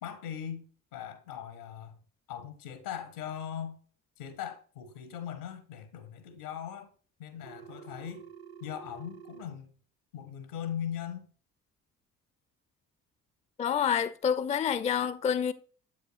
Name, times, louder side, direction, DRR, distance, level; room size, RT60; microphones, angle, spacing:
voice 1, 0.0-2.0 2.3-3.8 4.2-6.9 7.2-8.3 8.6-9.7 10.1-11.3, left 9 dB, 75° left, 1.2 m, -40 dB
Telephone, 7.4-9.4, right 8 dB, 55° right, 0.8 m, -48 dB
voice 2, 13.6-15.5, left 8 dB, 15° left, 0.4 m, -28 dB
7.7 x 5.7 x 2.5 m
figure-of-eight pair, 45°, 44 cm